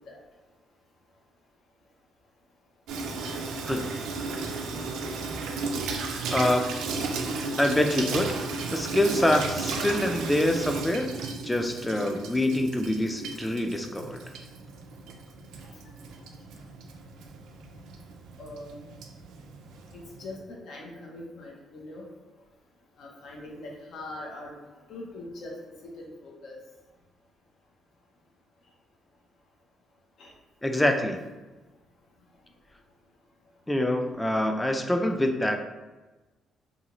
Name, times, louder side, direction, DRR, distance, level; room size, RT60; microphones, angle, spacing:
Water tap faucet / Sink (filling or washing), 2.9-20.4, right 3 dB, 90° right, 0.3 m, -35 dB
voice 1, 6.3-6.8 7.6-8.4 8.7-11.1 11.4-14.2 30.6-31.2 33.7-35.6, left 1 dB, 10° left, 4 dB, 0.3 m, -25 dB
voice 2, 15.7-16.1 18.4-18.8 19.9-22.0 23.0-24.5 24.9-26.6 30.2-30.3, left 2 dB, 70° left, -2 dB, 0.7 m, -42 dB
2.6 x 2.3 x 2.9 m, 1.2 s
cardioid pair, 90°, 0 cm